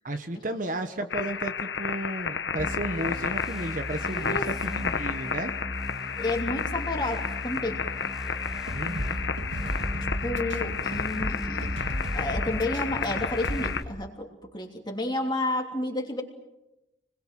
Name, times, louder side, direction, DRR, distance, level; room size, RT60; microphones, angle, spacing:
voice 1, 0.0-5.5 8.7-9.2, right 1 dB, 45° right, 7 dB, 1.3 m, -33 dB
sound 1, 1.1-13.8, left 6 dB, 65° left, 1.2 m, -32 dB
sound 2, 2.6-13.8, left 1 dB, 5° right, 2.5 m, -37 dB
voice 2, 4.1-4.5 6.2-7.8 10.2-11.8 12.1-16.2, left 2 dB, 25° left, 1 dB, 3.0 m, -31 dB
sound 3, 8.5-13.7, equal, 85° right, 2.1 m, -34 dB
29.0 x 21.5 x 7.6 m, 0.93 s
head